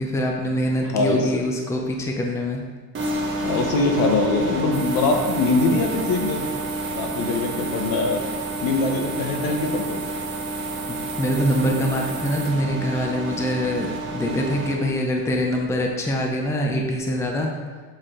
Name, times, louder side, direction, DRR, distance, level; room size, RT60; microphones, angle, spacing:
voice 1, 0.0-2.6 10.9-17.5, equal, 10° left, 1 dB, 0.5 m, -24 dB
voice 2, 0.8-1.4 3.4-6.4 6.9-8.3 8.6-10.1, left 3 dB, 70° left, 4 dB, 1.0 m, -23 dB
sound 1, 2.9-14.7, right 2 dB, 30° right, 1.2 m, -30 dB
sound 2, 4.7-12.5, right 6 dB, 70° right, 1.9 m, -38 dB
7.6 x 4.8 x 3.7 m, 1.4 s
cardioid pair, 155°, 37 cm